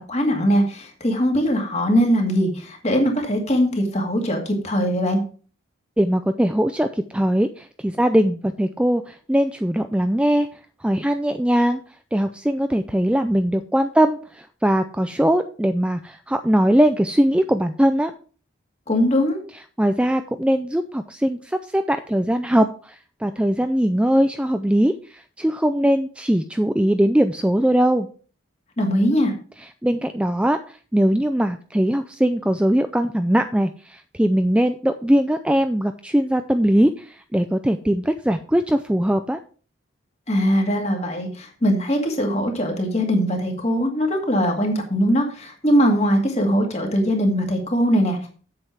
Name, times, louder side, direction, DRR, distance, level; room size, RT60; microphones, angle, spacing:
voice 1, 0.0-5.2 18.9-19.4 28.8-29.3 40.3-48.3, equal, 35° left, 2 dB, 2.1 m, -21 dB
voice 2, 6.0-10.5 10.8-11.8 12.1-18.1 19.8-28.1 29.6-39.4, equal, 5° right, 8 dB, 0.3 m, -20 dB
7.8 x 7.7 x 4.6 m, 0.40 s
head